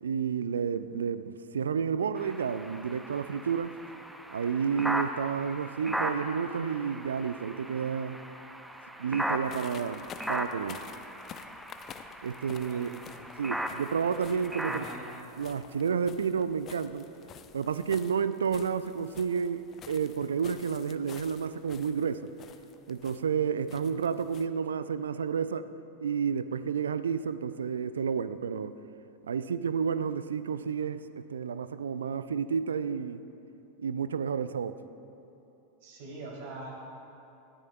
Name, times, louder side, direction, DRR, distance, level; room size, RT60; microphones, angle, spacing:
voice 1, 0.0-3.8 4.3-8.2 9.0-10.0 10.3-10.8 12.2-13.0 13.4-14.8 15.4-17.1 17.5-22.3 22.9-25.7 26.0-28.8 29.3-33.2 33.8-34.8, right 6 dB, 70° right, 14 dB, 0.4 m, -31 dB
sound 1, 2.2-15.2, right 1 dB, 5° right, 0.6 m, -38 dB
sound 2, 9.4-24.5, left 8 dB, 30° left, 0.5 m, -50 dB
voice 2, 12.5-13.3 14.7-15.0 35.8-36.7, right 2 dB, 55° right, -2 dB, 2.9 m, -44 dB
19.0 x 14.0 x 2.3 m, 2.9 s
figure-of-eight pair, 90°, 0 cm